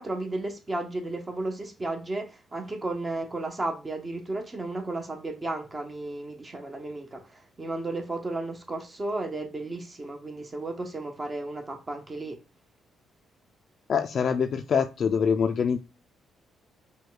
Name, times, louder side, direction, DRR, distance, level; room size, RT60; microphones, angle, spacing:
voice 1, 0.0-12.4, right 2 dB, 30° right, 0.9 m, -33 dB
voice 2, 13.9-15.8, left 6 dB, 55° left, 0.4 m, -24 dB
5.1 x 2.3 x 3.8 m
cardioid pair, 90°, 0 cm